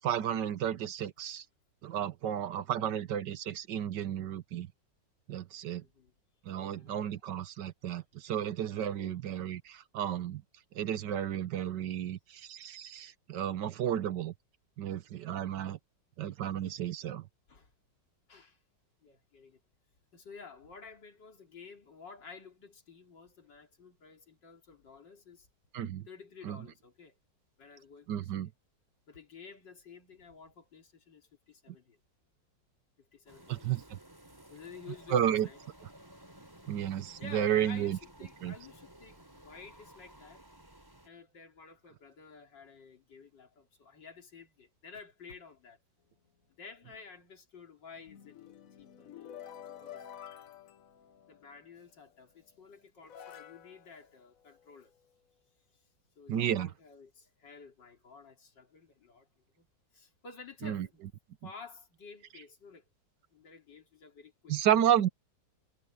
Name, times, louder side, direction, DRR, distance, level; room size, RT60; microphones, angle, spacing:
voice 1, 0.0-1.4 1.8-4.7 5.3-5.8 6.5-10.4 10.7-14.3 14.8-15.8 16.2-17.2 25.7-26.0 26.4-26.6 28.1-28.5 33.5-34.0 35.1-35.5 36.7-38.0 38.4-38.5 56.3-56.7 60.6-60.9 64.5-65.1, right 10 dB, 70° right, 1.5 m, -32 dB
voice 2, 5.8-6.1 6.5-7.0 9.0-9.2 17.5-17.7 18.3-18.6 19.0-19.6 20.1-25.5 26.1-27.2 27.6-28.5 29.1-32.0 33.0-33.7 34.5-35.6 37.2-40.4 41.0-45.8 46.6-48.4 48.8-49.3 49.8-50.1 51.3-54.9 56.2-59.7 59.9-61.0 61.4-62.8 63.3-64.5, left 5 dB, 70° left, 3.6 m, -52 dB
sound 1, 33.3-41.1, right 1 dB, 10° right, 4.2 m, -55 dB
sound 2, 47.9-51.7 52.5-52.6 53.0-55.0, left 9 dB, 55° left, 1.1 m, -50 dB
omnidirectional pair, 2.0 m